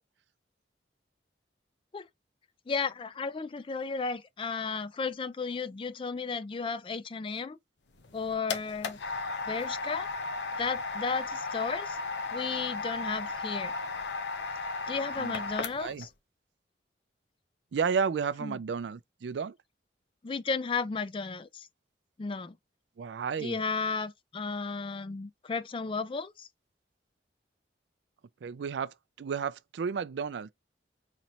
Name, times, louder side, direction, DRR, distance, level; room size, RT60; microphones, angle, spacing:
voice 1, 2.7-7.6 8.1-9.0 9.5-10.1 10.6-12.0 12.3-13.7 14.6-16.1 18.4-18.6 20.2-21.7 22.2-22.6 23.4-26.5, left 4 dB, 30° left, 0.3 m, -34 dB
sound 1, 7.9-16.1, left 3 dB, 80° left, 0.8 m, -35 dB
voice 2, 17.7-19.6 23.0-23.6 28.4-30.5, right 6 dB, 75° right, 0.4 m, -32 dB
4.1 x 3.1 x 2.8 m
head